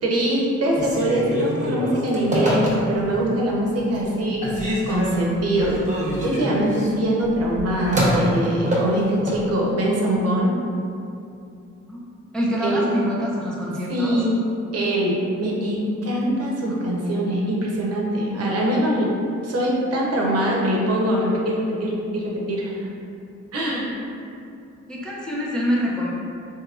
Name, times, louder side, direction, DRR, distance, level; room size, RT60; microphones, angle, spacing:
voice 1, 0.0-5.8 6.2-10.5 12.6-12.8 13.9-14.3 14.7-19.1 19.4-22.8 23.5-23.9, right 1 dB, 55° right, -3 dB, 0.7 m, -23 dB
Telephone, 0.7-3.2 3.6-4.1 4.4-9.4, equal, 25° right, 0.9 m, -26 dB
voice 2, 12.3-14.2 24.9-26.1, equal, 5° left, -5 dB, 0.4 m, -25 dB
3.4 x 2.9 x 2.4 m, 2.6 s
cardioid pair, 90°, 30 cm